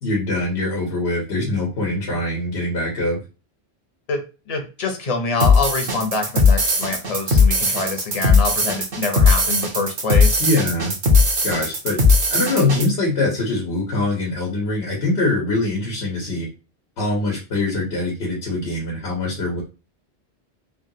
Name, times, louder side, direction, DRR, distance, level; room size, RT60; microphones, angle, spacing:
voice 1, 0.0-3.2 10.4-10.9 11.4-12.0 12.3-16.5 17.0-19.6, left 2 dB, 85° left, -2 dB, 1.2 m, -23 dB
voice 2, 4.5-10.4, left 3 dB, 40° left, 4 dB, 0.7 m, -25 dB
sound 1, 5.4-12.9, left 3 dB, 50° right, 0.9 m, -18 dB
3.4 x 2.3 x 2.7 m, 0.32 s
omnidirectional pair, 1.1 m